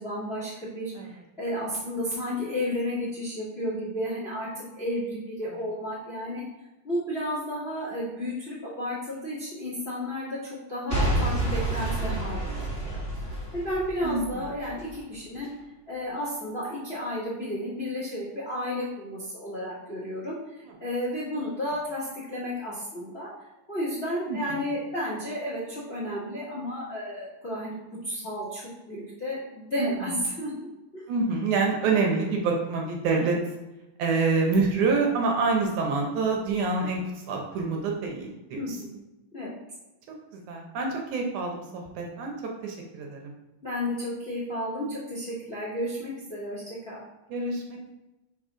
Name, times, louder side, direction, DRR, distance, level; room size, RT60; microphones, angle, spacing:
voice 1, 0.0-6.4 6.8-10.4 10.7-13.0 13.5-15.5 15.9-23.3 23.7-27.8 28.0-31.1 33.1-33.3 38.5-39.0 39.3-39.5 43.6-47.0, left 1 dB, 25° left, -9 dB, 1.6 m, -32 dB
Boom / Shatter / Crushing, 10.9-14.9 15.4-15.5, right 1 dB, 25° right, 1.4 m, -29 dB
voice 2, 31.1-33.4 34.0-37.0 37.3-38.8 40.5-42.3 42.6-43.2 47.3-47.9, right 4 dB, 75° right, 0 dB, 2.1 m, -26 dB
5.0 x 4.0 x 4.9 m, 1.0 s
omnidirectional pair, 3.7 m